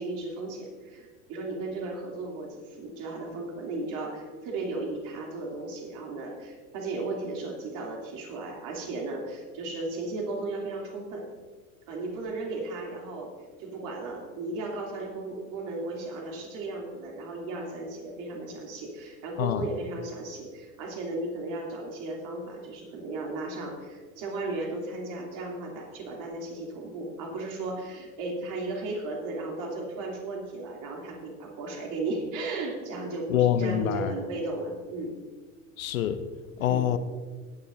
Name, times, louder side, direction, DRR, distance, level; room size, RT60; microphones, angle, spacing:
voice 1, 0.0-11.3 11.9-13.3 13.6-35.2 36.6-36.9, right 2 dB, 45° right, -1 dB, 2.9 m, -35 dB
voice 2, 33.3-34.1 35.8-36.2 36.6-37.0, left 10 dB, 65° left, 11 dB, 0.8 m, -25 dB
18.5 x 9.7 x 2.7 m, 1.4 s
figure-of-eight pair, 80°, 44 cm